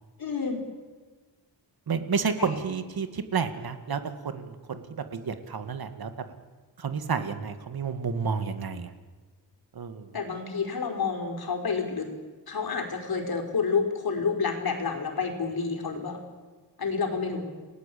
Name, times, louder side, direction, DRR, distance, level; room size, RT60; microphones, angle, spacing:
voice 1, 0.2-0.6 2.4-2.5 10.1-12.1 12.5-16.2 16.8-17.5, left 5 dB, 55° left, 4 dB, 4.8 m, -29 dB
voice 2, 1.9-6.1 6.8-8.9 9.7-10.1, right 5 dB, 55° right, 9 dB, 2.0 m, -30 dB
29.5 x 18.5 x 8.5 m, 1.4 s
wide cardioid pair, 115°, 42 cm